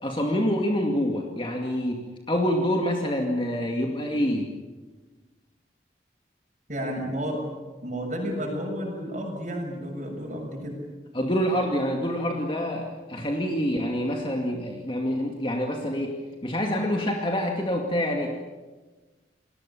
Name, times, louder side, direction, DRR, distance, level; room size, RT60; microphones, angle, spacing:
voice 1, 0.0-4.5 11.1-18.5, equal, 30° left, 1 dB, 2.3 m, -26 dB
voice 2, 6.7-7.4 7.8-10.8, equal, 45° right, 0 dB, 7.1 m, -31 dB
29.0 x 21.5 x 7.2 m, 1.3 s
head